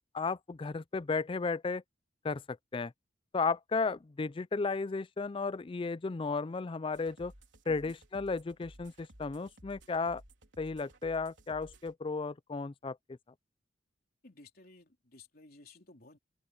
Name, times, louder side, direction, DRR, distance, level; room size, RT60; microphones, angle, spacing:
voice 1, 0.1-1.8 2.2-2.9 3.3-7.3 7.7-10.2 10.6-13.0, left 4 dB, 25° left, 0.4 m, -34 dB
sound 1, 6.9-11.9, right 1 dB, 70° right, 4.4 m, -56 dB
voice 2, 14.2-16.2, left 2 dB, 50° left, 3.7 m, -56 dB
open air
head